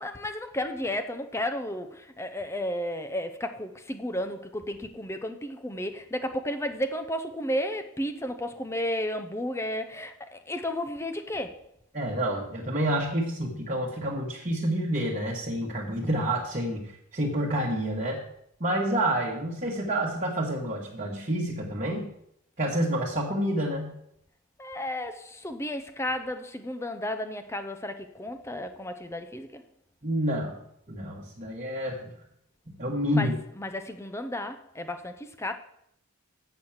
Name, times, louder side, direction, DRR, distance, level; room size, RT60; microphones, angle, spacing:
voice 1, 0.0-11.6 24.6-29.6 33.1-35.5, left 1 dB, 10° left, 0.5 m, -33 dB
voice 2, 11.9-18.2 18.6-22.0 22.6-23.9 30.0-30.6 30.9-32.1 32.7-33.3, right 1 dB, 35° right, 1.3 m, -28 dB
7.9 x 6.1 x 7.2 m
head